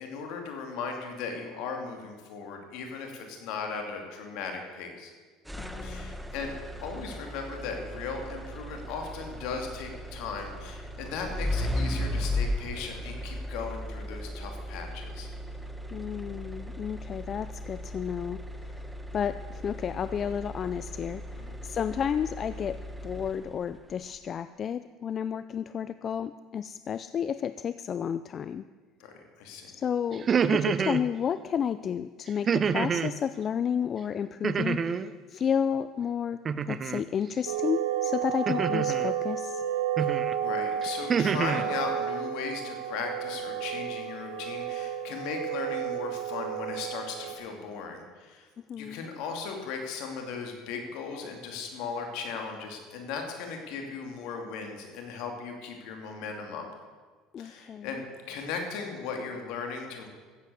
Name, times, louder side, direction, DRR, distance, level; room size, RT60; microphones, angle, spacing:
voice 1, 0.0-5.1 5.8-6.5 6.8-15.3 21.4-21.5 29.0-29.7 40.0-48.5 48.8-56.6 57.4-60.1, left 5 dB, 70° left, 3 dB, 2.7 m, -37 dB
voice 2, 5.5-6.2 15.9-22.8 23.0-28.6 29.7-36.4 36.7-39.6 48.7-49.1 57.3-58.0, left 8 dB, 40° left, 13 dB, 0.4 m, -32 dB
sound 1, 5.5-23.7, left 1 dB, 5° right, 1.2 m, -36 dB
sound 2, 30.1-31.0 32.5-33.1 34.4-35.1 36.4-37.0 38.5-39.1 40.0-40.3 40.8-41.6, right 6 dB, 35° right, 0.6 m, -27 dB
sound 3, 37.5-47.3, right 9 dB, 85° right, 1.3 m, -32 dB
14.0 x 8.3 x 7.9 m, 1.5 s
supercardioid pair, 90°, 0 cm